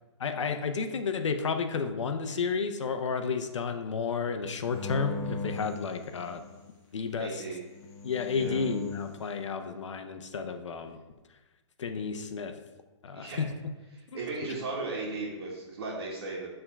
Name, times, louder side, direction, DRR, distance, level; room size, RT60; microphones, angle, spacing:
voice 1, 0.2-6.4 6.9-7.4 8.0-11.0 11.8-12.6 13.0-13.5 14.5-14.6, left 5 dB, 80° left, 7 dB, 0.8 m, -32 dB
sound 1, 4.7-6.7 7.7-9.2, left 3 dB, 20° left, 0.8 m, -39 dB
voice 2, 7.2-7.6 8.3-8.6 13.1-13.4 13.9-16.5, right 3 dB, 50° right, -6 dB, 1.7 m, -36 dB
6.8 x 3.8 x 5.8 m, 1.1 s
hypercardioid pair, 165°, 15 cm